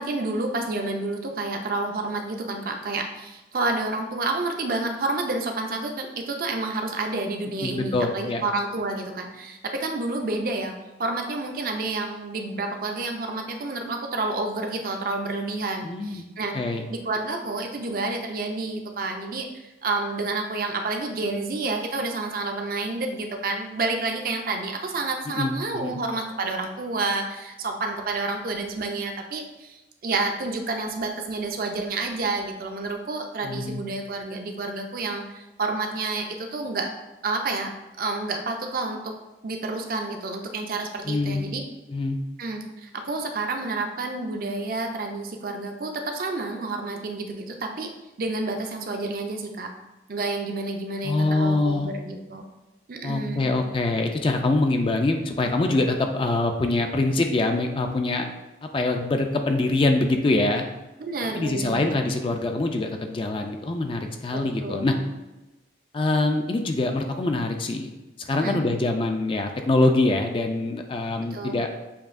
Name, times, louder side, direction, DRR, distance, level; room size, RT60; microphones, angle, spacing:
voice 1, 0.0-10.7 11.0-16.5 16.9-36.9 37.2-37.7 38.0-39.1 39.4-41.7 42.4-47.9 48.2-49.7 50.1-52.5 52.9-53.5 61.0-61.9 64.3-65.0 68.4-68.6 71.3-71.5, right 3 dB, 50° right, 4 dB, 0.5 m, -29 dB
voice 2, 7.6-8.4 15.8-16.2 16.5-16.8 25.3-26.0 33.4-33.8 41.1-41.5 41.9-42.2 51.0-51.9 53.0-58.3 58.7-60.6 61.3-65.0 65.9-67.9 68.3-71.7, left 2 dB, 30° left, 5 dB, 0.3 m, -24 dB
6.9 x 2.7 x 2.5 m, 1.0 s
head